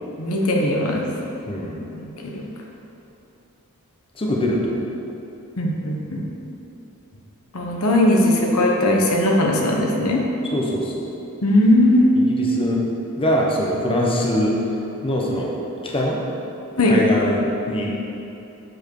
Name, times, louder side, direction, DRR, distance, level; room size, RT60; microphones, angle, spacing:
voice 1, 0.2-1.1 2.0-2.1 5.6-6.2 7.5-10.2 11.4-12.2 16.8-16.9, left 1 dB, 70° left, -1 dB, 1.1 m, -18 dB
voice 2, 1.5-1.8 4.2-4.8 10.5-11.1 12.2-12.8 13.2-14.6 15.0-15.5 15.9-16.2 16.8-17.9, left 1 dB, 25° left, -2 dB, 0.9 m, -22 dB
7.9 x 4.8 x 6.4 m, 3.0 s
head